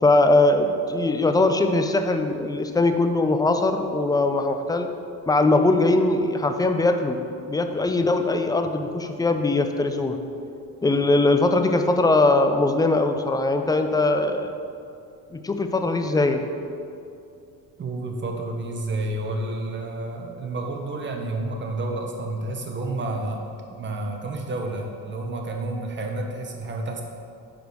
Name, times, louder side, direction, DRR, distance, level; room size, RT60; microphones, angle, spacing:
voice 1, 0.0-4.9 5.3-7.2 7.5-10.2 10.8-14.6 15.3-16.4, left 2 dB, 10° left, 6 dB, 0.3 m, -21 dB
voice 2, 17.8-23.4 23.7-27.0, right 2 dB, 30° right, 2 dB, 1.0 m, -30 dB
5.1 x 5.0 x 6.1 m, 2.5 s
cardioid pair, 110°, 38 cm